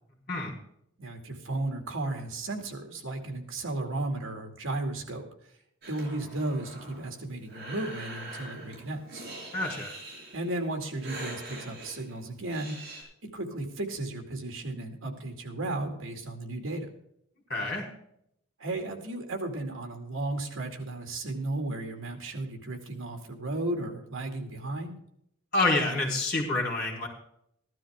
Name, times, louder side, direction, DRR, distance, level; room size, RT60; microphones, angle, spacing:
voice 1, 1.0-5.2 5.9-9.2 10.3-12.7 13.3-16.9 18.6-24.9, right 2 dB, 70° right, 4 dB, 2.4 m, -34 dB
Breathing, 5.8-13.0, right 1 dB, 45° right, 6.1 m, -44 dB
voice 2, 9.5-9.9 17.5-17.9 25.5-27.1, left 2 dB, 45° left, -1 dB, 4.2 m, -28 dB
15.0 x 12.5 x 3.6 m, 0.72 s
head